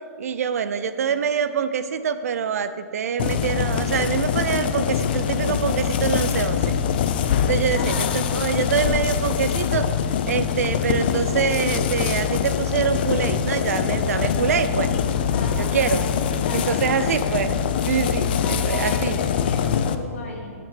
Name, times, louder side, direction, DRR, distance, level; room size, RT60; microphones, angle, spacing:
voice 1, 0.2-6.7 7.5-9.9 10.3-14.9 15.5-16.0 16.5-17.6 17.9-19.2, right 7 dB, 70° right, 11 dB, 0.5 m, -25 dB
sound 1, 3.2-20.0, left 8 dB, 40° left, 0.4 m, -23 dB
voice 2, 7.7-8.1 15.3-16.2 16.4-17.1 18.4-20.5, left 3 dB, 55° left, -1 dB, 1.9 m, -36 dB
sound 2, 10.9-17.1, left 4 dB, 90° left, 0.9 m, -39 dB
7.1 x 5.9 x 6.8 m, 2.1 s
hypercardioid pair, 175°, 8 cm